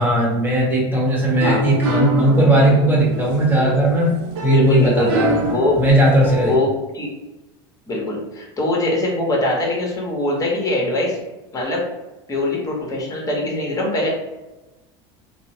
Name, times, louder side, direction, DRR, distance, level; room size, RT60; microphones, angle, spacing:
voice 1, 0.0-4.1 4.4-5.4 5.8-6.5, right 1 dB, 15° right, -4 dB, 1.2 m, -17 dB
sound 1, 1.1-6.6, right 1 dB, 70° right, 0.7 m, -26 dB
voice 2, 4.5-5.1 5.4-5.8 6.4-7.1 7.9-11.2 11.5-11.8 12.3-14.1, left 1 dB, 25° left, -2 dB, 1.1 m, -22 dB
2.8 x 2.0 x 2.8 m, 1.0 s
hypercardioid pair, 90°, 14 cm